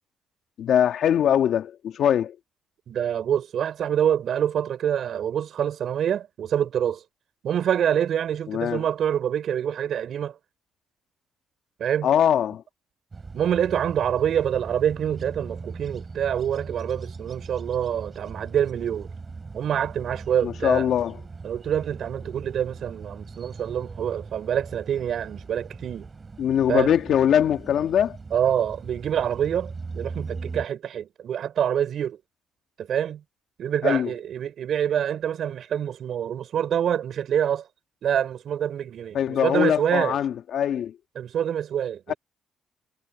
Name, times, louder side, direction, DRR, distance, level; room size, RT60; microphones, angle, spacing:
voice 1, 0.6-2.4 8.5-8.8 12.0-12.6 20.4-21.2 26.4-28.2 33.8-34.1 39.1-41.0 42.1-42.2, left 9 dB, 70° left, 2.2 m, -22 dB
voice 2, 2.9-7.0 7.4-10.4 11.8-12.1 13.3-19.1 19.5-20.9 21.4-26.1 26.7-26.9 28.3-32.2 32.8-33.2 33.6-37.6 38.0-40.2 41.2-42.2, right 9 dB, 65° right, 5.9 m, -26 dB
sound 1, 13.1-30.7, right 4 dB, 30° right, 7.7 m, -39 dB
cardioid pair, 90°, 0 cm